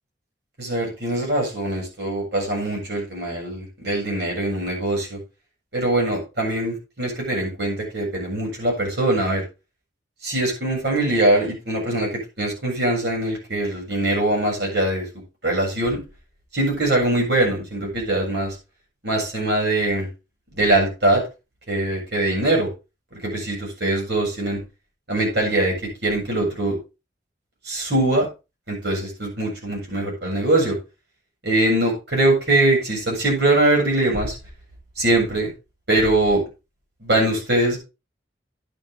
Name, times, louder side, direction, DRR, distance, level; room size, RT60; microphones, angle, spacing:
voice 1, 0.6-5.2 5.7-9.4 10.2-15.1 15.4-16.0 16.5-18.6 19.0-20.1 20.5-21.2 21.7-22.7 23.1-24.6 25.1-25.8 26.0-26.8 27.6-28.3 28.7-30.8 31.4-34.3 35.0-35.5 35.9-36.4 37.0-37.8, right 1 dB, 60° right, -1 dB, 7.7 m, -22 dB
12.0 x 9.3 x 3.7 m, 0.28 s
head